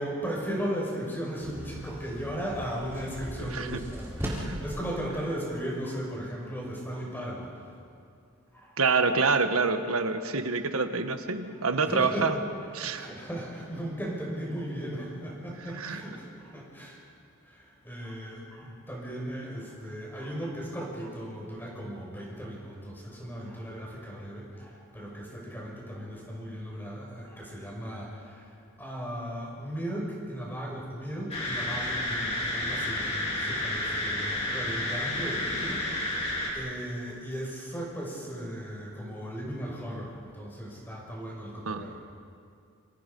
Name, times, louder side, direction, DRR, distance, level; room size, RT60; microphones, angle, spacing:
voice 1, 0.0-4.2 4.6-7.5 8.5-8.8 11.8-12.3 12.8-17.0 17.4-36.3 36.5-42.0, equal, 10° left, -3 dB, 6.1 m, -36 dB
sound 1, 1.4-4.8, equal, 10° right, 4.2 m, -38 dB
voice 2, 3.4-3.8 4.2-4.6 8.8-12.4 12.7-13.1 15.8-16.0 41.6-41.8, right 4 dB, 85° right, 8 dB, 1.5 m, -27 dB
sound 2, 31.3-36.5, left 1 dB, 30° left, 4.5 m, -31 dB
27.5 x 26.0 x 5.5 m, 2.4 s
head